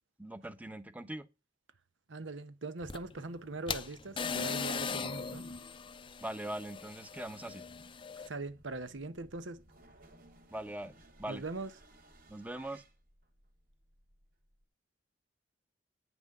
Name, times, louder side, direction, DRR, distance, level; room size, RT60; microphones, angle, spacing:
voice 1, 0.2-1.3 6.2-7.6 10.5-11.4 12.3-12.8, right 1 dB, 10° right, 0.8 m, -41 dB
voice 2, 2.1-5.5 8.3-9.6 11.3-11.7, right 2 dB, 85° right, 1.0 m, -41 dB
sound 1, 2.8-8.3, left 5 dB, 25° left, 0.5 m, -39 dB
sound 2, 4.1-14.6, right 1 dB, 50° right, 3.2 m, -61 dB
9.3 x 6.1 x 6.6 m
head